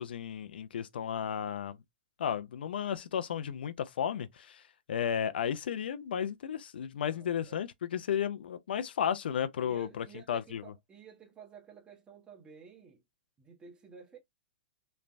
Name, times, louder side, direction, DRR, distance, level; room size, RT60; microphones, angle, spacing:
voice 1, 0.0-1.8 2.2-4.6 4.9-10.6, left 8 dB, 80° left, 0.4 m, -33 dB
voice 2, 7.0-7.6 9.6-13.0 13.4-14.2, right 6 dB, 15° right, 0.8 m, -53 dB
3.1 x 2.1 x 2.5 m
hypercardioid pair, 130°, 5 cm